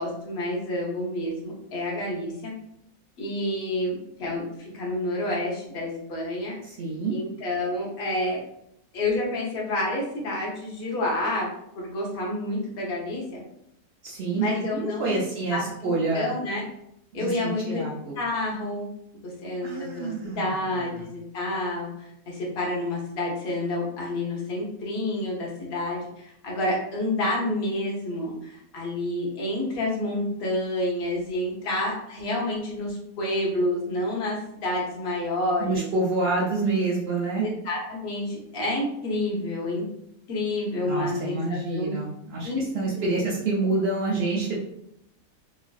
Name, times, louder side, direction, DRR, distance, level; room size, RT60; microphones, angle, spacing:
voice 1, 0.0-2.5 3.2-6.6 7.1-8.4 8.9-11.5 11.8-13.4 14.3-15.2 15.5-16.6 17.1-17.8 18.2-18.9 19.2-35.8 37.4-39.8 40.3-42.0 42.4-42.6 43.2-43.3, left 1 dB, 45° left, -3 dB, 0.9 m, -29 dB
voice 2, 6.6-7.1 14.0-14.4 14.7-16.3 17.2-18.2 19.6-20.5 20.9-21.0 35.6-37.5 40.9-44.6, right 3 dB, 85° right, -4 dB, 0.5 m, -27 dB
3.0 x 2.4 x 2.3 m, 0.77 s
omnidirectional pair, 1.6 m